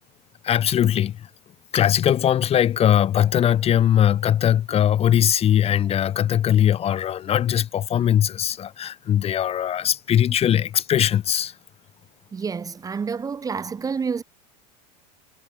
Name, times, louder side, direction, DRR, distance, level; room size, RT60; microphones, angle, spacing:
voice 1, 0.4-1.2 1.7-11.5, left 10 dB, 30° left, 0.9 m, -20 dB
voice 2, 12.3-14.2, right 5 dB, 15° right, 1.0 m, -28 dB
supercardioid pair, 130°, 21 cm